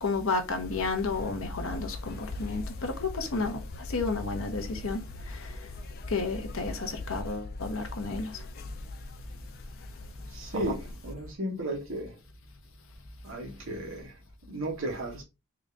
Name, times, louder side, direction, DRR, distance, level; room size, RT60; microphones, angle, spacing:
voice 1, 0.0-3.6 3.9-5.5 6.1-8.4, left 3 dB, 60° left, 0.8 m, -32 dB
sound 1, 0.6-10.9, left 2 dB, 45° left, 0.3 m, -41 dB
voice 2, 10.3-12.2 13.2-15.2, right 1 dB, 60° right, 1.1 m, -35 dB
3.8 x 2.4 x 3.2 m
head